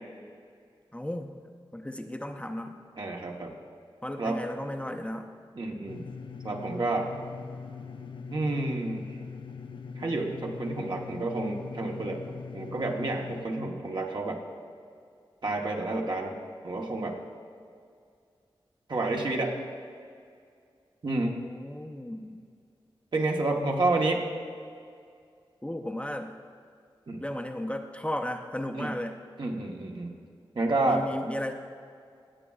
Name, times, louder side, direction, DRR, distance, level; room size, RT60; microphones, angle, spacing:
voice 1, 0.9-1.5 1.7-2.7 4.0-5.3 21.2-22.4 25.6-26.3 27.2-29.2 30.9-31.5, left 1 dB, 15° left, 4 dB, 0.6 m, -35 dB
voice 2, 3.0-3.6 4.2-4.4 5.5-6.0 6.4-7.1 8.3-9.0 10.0-14.4 15.4-16.3 16.6-17.2 18.9-19.6 21.0-21.4 23.1-24.2 27.1-27.2 28.7-28.9 29.4-30.2 30.5-31.0, right 2 dB, 55° right, 1 dB, 1.0 m, -29 dB
sound 1, 5.9-13.5, left 5 dB, 60° left, 0.4 m, -41 dB
16.5 x 7.2 x 2.4 m, 2.3 s
wide cardioid pair, 65°, 9 cm